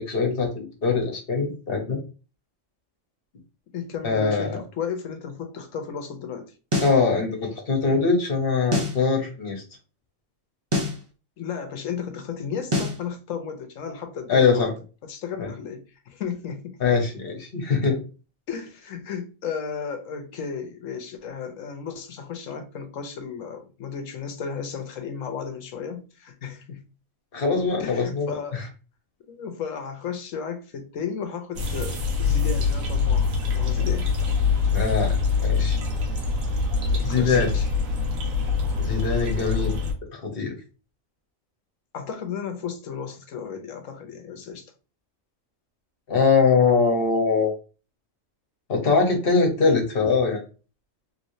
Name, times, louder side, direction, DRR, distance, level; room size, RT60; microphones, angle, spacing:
voice 1, 0.0-2.0 4.0-4.6 6.8-9.6 14.3-14.7 15.4-15.5 16.8-18.0 27.3-28.6 34.7-35.8 37.0-37.5 38.8-39.8 40.1-40.5 46.1-47.5 48.7-50.4, left 4 dB, 45° left, 1.2 m, -22 dB
voice 2, 3.7-6.5 11.4-14.7 15.0-16.8 18.5-26.8 27.8-28.6 29.3-34.1 36.9-37.7 41.9-44.6, left 6 dB, 75° left, 1.1 m, -34 dB
sound 1, 6.7-7.0 8.7-9.0 10.7-11.0 12.7-13.0, left 2 dB, 25° right, 0.8 m, -25 dB
sound 2, 31.6-39.9, left 5 dB, 90° right, 1.3 m, -24 dB
3.3 x 3.1 x 2.7 m
omnidirectional pair, 1.4 m